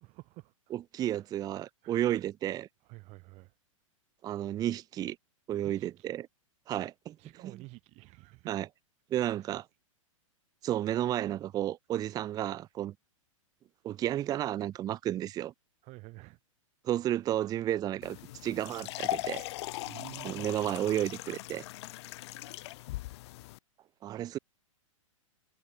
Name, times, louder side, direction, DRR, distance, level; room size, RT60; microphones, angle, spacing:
voice 1, 0.0-1.3 1.8-2.2 2.8-3.5 5.6-6.1 7.2-8.6 9.3-9.6 15.8-16.4 19.8-20.5 22.5-23.0, right 23 dB, 40° right, 7.6 m, -51 dB
voice 2, 0.7-2.7 4.2-5.2 5.5-6.2 6.7-7.2 7.4-7.6 8.5-8.7 9.1-9.7 10.6-12.9 13.8-15.5 16.8-19.5 20.2-21.6 24.0-24.4, right 12 dB, 20° right, 0.6 m, -32 dB
sound 1, 18.0-23.6, left 18 dB, 50° left, 3.2 m, -39 dB
figure-of-eight pair, 105°, 17 cm